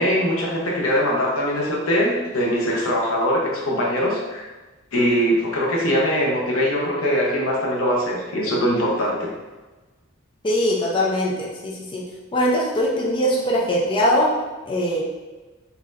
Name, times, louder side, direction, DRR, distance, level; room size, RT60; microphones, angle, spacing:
voice 1, 0.0-4.5 4.9-9.3, equal, 85° left, -3 dB, 0.9 m, -22 dB
voice 2, 10.4-12.0 12.3-14.3 14.7-15.0, equal, 25° left, -4 dB, 0.5 m, -21 dB
4.0 x 2.8 x 2.5 m, 1.2 s
head